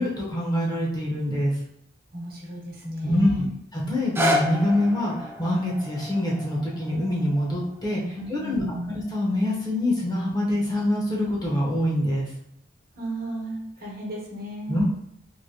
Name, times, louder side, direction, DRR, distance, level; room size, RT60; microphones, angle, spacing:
voice 1, 0.0-1.6 3.0-3.3 3.7-8.6 8.9-12.3 14.7-14.8, left 1 dB, 20° left, -4 dB, 0.8 m, -25 dB
voice 2, 2.1-3.5 8.1-8.9 12.9-14.8, right 1 dB, 50° right, -3 dB, 1.1 m, -34 dB
sound 1, 3.9-10.0 10.6-10.7, left 1 dB, 10° right, 0.3 m, -32 dB
3.1 x 2.8 x 2.7 m, 0.73 s
head